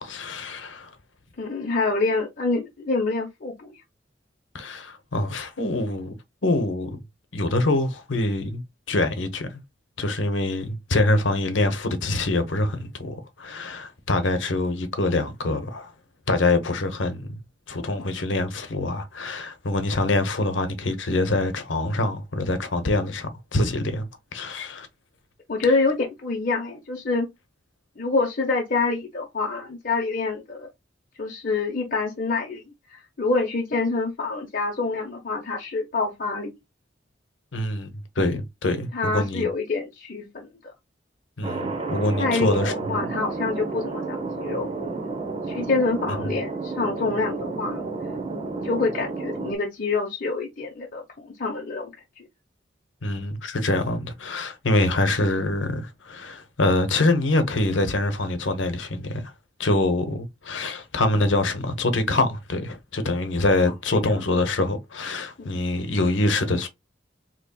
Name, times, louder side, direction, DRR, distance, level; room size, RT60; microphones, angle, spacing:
voice 1, 0.0-0.9 4.5-6.1 6.4-7.0 7.3-9.6 10.0-15.9 16.3-17.4 17.7-24.9 37.5-37.9 38.2-39.5 41.4-42.7 53.0-59.3 59.6-66.7, left 2 dB, 80° left, 0.9 m, -25 dB
voice 2, 1.4-3.8 18.0-18.1 25.5-27.3 28.0-30.7 31.2-32.6 32.9-36.5 38.9-40.5 42.1-44.7 45.5-47.9 48.4-51.9 52.2-52.3 63.9-64.0 65.4-65.6, left 3 dB, 50° left, 0.8 m, -26 dB
Thunder, 41.4-49.6, right 3 dB, 30° right, 0.8 m, -31 dB
4.1 x 3.0 x 2.2 m
head